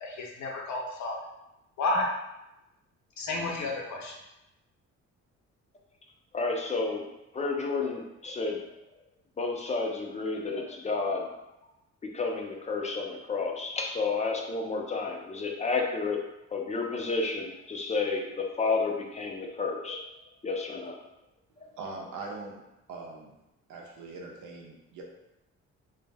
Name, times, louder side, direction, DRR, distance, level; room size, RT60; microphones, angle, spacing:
voice 1, 0.0-1.1 1.8-2.1 3.2-4.1, left 2 dB, 70° left, -1 dB, 0.7 m, -31 dB
voice 2, 6.3-7.1 7.3-8.6 9.4-11.3 12.1-16.2 16.5-20.0 20.4-21.0, left 4 dB, 25° left, 1 dB, 0.4 m, -31 dB
voice 3, 21.8-22.6 22.9-23.3 23.7-25.0, right 3 dB, 75° right, -1 dB, 0.7 m, -41 dB
2.1 x 2.1 x 3.3 m, 0.92 s
cardioid pair, 90°, 30 cm